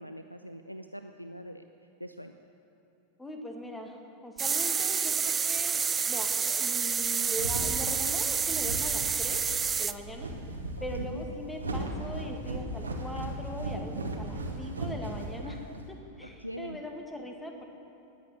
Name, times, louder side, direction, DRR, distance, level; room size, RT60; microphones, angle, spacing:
voice 1, 0.0-1.6 2.0-2.3 11.0-11.2 15.4-15.9 16.4-16.8, equal, 90° left, 8 dB, 0.5 m, -42 dB
voice 2, 3.2-9.4 9.8-10.3 10.8-17.6, equal, 5° left, 3 dB, 1.9 m, -41 dB
sound 1, 4.4-9.9, right 6 dB, 20° right, 0.4 m, -29 dB
sound 2, 7.2-15.9, right 1 dB, 75° right, 1.7 m, -37 dB
19.5 x 8.4 x 8.3 m, 2.7 s
figure-of-eight pair, 90°, 0 cm